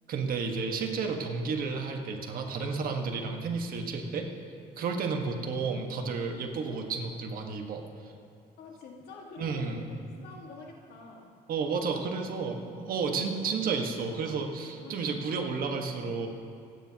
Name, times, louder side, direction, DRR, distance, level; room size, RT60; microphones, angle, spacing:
voice 1, 0.1-4.3 4.8-8.1 9.4-9.8 11.5-16.3, right 4 dB, 60° right, 2 dB, 1.6 m, -32 dB
voice 2, 5.1-5.4 8.6-11.3 11.9-12.1 12.4-12.6 14.8-15.3, left 3 dB, 70° left, 0 dB, 2.0 m, -47 dB
26.0 x 9.5 x 3.0 m, 2.4 s
cardioid pair, 110°, 17 cm